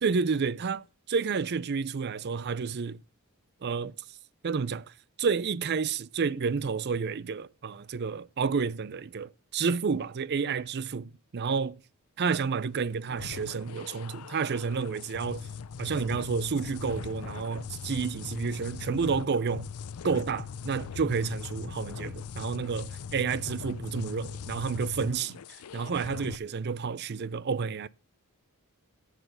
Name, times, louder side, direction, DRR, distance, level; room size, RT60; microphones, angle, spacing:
voice 1, 0.0-3.0 3.6-4.2 4.4-11.8 12.2-15.5 15.8-19.7 20.0-27.9, right 5 dB, 50° right, 0.5 m, -30 dB
sound 1, 13.1-26.4, left 6 dB, 85° left, 0.5 m, -40 dB
14.0 x 5.0 x 6.5 m
head